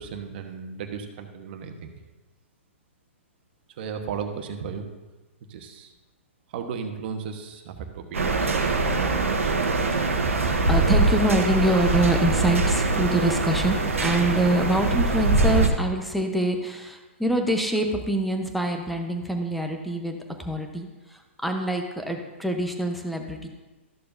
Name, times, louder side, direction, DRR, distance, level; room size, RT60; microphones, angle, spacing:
voice 1, 0.0-1.9 3.7-4.8 5.5-5.9 6.5-9.6, right 6 dB, 50° right, 5 dB, 1.2 m, -36 dB
sound 1, 8.1-15.7, right 3 dB, 90° right, 1.1 m, -23 dB
voice 2, 9.8-10.1 10.5-23.5, right 1 dB, ahead, 3 dB, 0.9 m, -25 dB
13.5 x 6.7 x 2.7 m, 1.2 s
hypercardioid pair, 130°, 7 cm